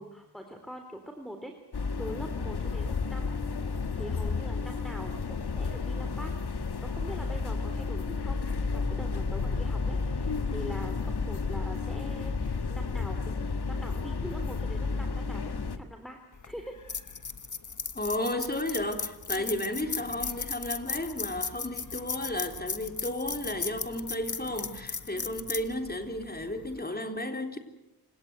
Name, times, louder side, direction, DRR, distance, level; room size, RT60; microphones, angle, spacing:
voice 1, 0.0-1.5 2.0-3.3 3.9-6.3 6.8-16.2 16.4-16.8 19.3-19.6 25.1-25.4, equal, ahead, 3.2 m, -43 dB
sound 1, 1.7-15.8, left 4 dB, 70° left, 1.6 m, -32 dB
sound 2, 16.3-26.8, left 5 dB, 45° left, 1.4 m, -37 dB
voice 2, 17.9-27.6, left 1 dB, 25° left, 3.8 m, -33 dB
28.0 x 18.0 x 8.1 m
cardioid pair, 60°, 41 cm